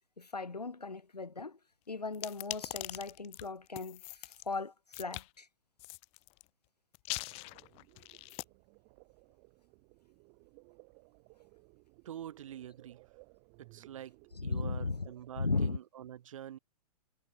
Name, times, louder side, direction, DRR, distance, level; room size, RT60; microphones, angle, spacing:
voice 1, 0.2-1.6 1.9-5.5 14.4-15.1 15.4-15.8, left 3 dB, 90° left, 0.7 m, -37 dB
sound 1, 2.1-4.5 4.9-5.3 5.8-6.4 6.9-8.4, left 26 dB, 30° left, 1.2 m, -42 dB
sound 2, 7.1-15.4, right 40 dB or more, 35° right, 7.5 m, -61 dB
voice 2, 12.1-13.0 13.6-16.6, right 11 dB, 55° right, 5.4 m, -46 dB
figure-of-eight pair, 110°, 20 cm